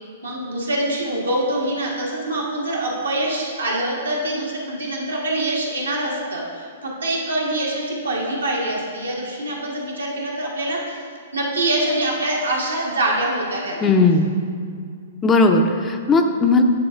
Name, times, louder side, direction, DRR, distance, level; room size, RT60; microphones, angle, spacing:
voice 1, 0.2-11.0 11.3-13.9, right 1 dB, 80° right, -3 dB, 1.5 m, -24 dB
voice 2, 13.8-14.3 15.2-16.6, left 3 dB, 20° left, 4 dB, 0.5 m, -17 dB
10.5 x 3.6 x 3.5 m, 2.2 s
figure-of-eight pair, 115°, 0 cm